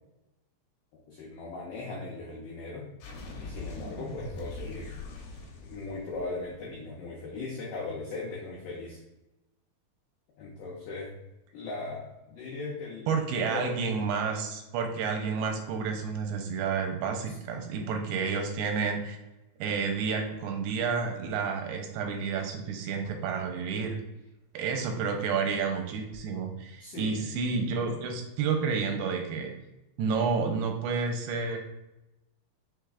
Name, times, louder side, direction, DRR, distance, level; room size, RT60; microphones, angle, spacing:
voice 1, 1.1-2.9 3.4-4.9 5.6-9.0 10.4-11.1 11.5-13.1 13.5-13.8 17.0-17.3 17.8-17.9 26.8-27.3, left 3 dB, 85° left, -4 dB, 1.8 m, -38 dB
sound 1, 3.0-6.7, left 2 dB, 70° left, 2.1 m, -41 dB
voice 2, 13.1-19.2 19.6-24.0 24.5-29.5 30.0-31.6, right 5 dB, 85° right, 3 dB, 2.6 m, -30 dB
5.9 x 3.4 x 2.4 m, 0.95 s
omnidirectional pair, 4.7 m